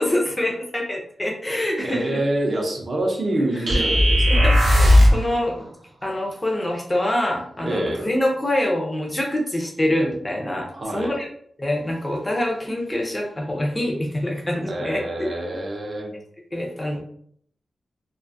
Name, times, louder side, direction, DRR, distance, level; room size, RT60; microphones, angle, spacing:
voice 1, 0.0-2.2 3.5-3.8 4.3-5.7 6.0-10.7 10.9-11.3 11.6-15.3 16.5-17.0, left 1 dB, 15° left, 0 dB, 0.4 m, -25 dB
voice 2, 1.8-4.5 7.6-8.1 10.7-11.1 14.7-16.1, right 1 dB, 40° right, 0 dB, 0.5 m, -26 dB
sound 1, 3.7-5.3, left 1 dB, 90° right, 0.6 m, -15 dB
2.4 x 2.2 x 2.5 m, 0.65 s
wide cardioid pair, 155°, 0 cm